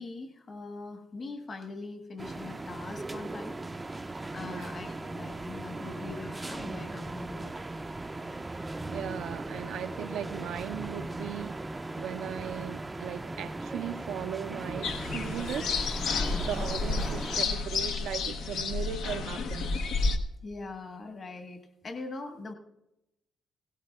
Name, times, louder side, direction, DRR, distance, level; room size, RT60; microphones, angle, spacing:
voice 1, 0.0-3.6 3.9-7.5 16.3-16.7 20.4-22.5, left 3 dB, 40° left, 1.4 m, -42 dB
sound 1, 2.2-17.5, right 2 dB, 15° right, 0.4 m, -38 dB
voice 2, 8.9-15.8 16.4-19.9, right 9 dB, 85° right, 0.5 m, -38 dB
sound 2, 14.8-20.2, left 4 dB, 80° left, 0.8 m, -31 dB
17.0 x 16.5 x 2.3 m
cardioid pair, 90°, 0 cm